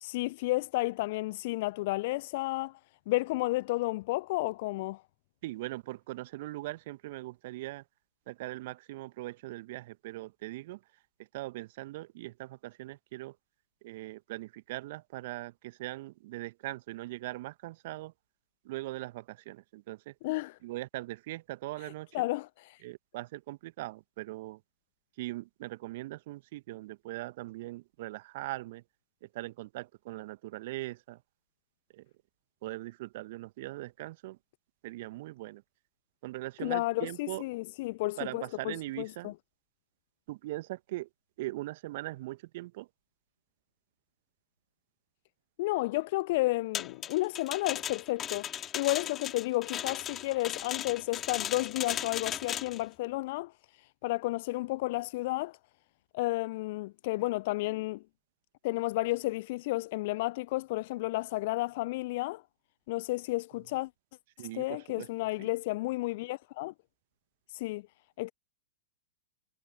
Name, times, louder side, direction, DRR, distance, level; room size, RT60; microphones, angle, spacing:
voice 1, 0.0-2.7 3.1-5.0 20.2-20.5 22.1-22.8 36.6-39.3 45.6-48.5 48.7-53.5 54.0-55.6 56.1-58.0 58.6-62.4 62.9-63.9 64.5-66.7 67.5-67.8 68.2-68.3, left 20 dB, 50° left, 0.5 m, -32 dB
voice 2, 5.4-7.8 8.3-10.8 11.3-13.4 13.8-18.1 18.6-20.1 20.6-22.2 22.8-24.6 25.2-28.8 29.2-31.2 31.9-32.0 32.6-34.4 34.8-35.6 36.2-37.4 38.2-39.3 40.3-41.1 41.4-42.9 64.4-65.1 65.4-65.5, right 18 dB, 50° right, 1.2 m, -40 dB
sound 1, 46.7-52.8, left 10 dB, 25° left, 2.4 m, -37 dB
figure-of-eight pair, 105°, 0 cm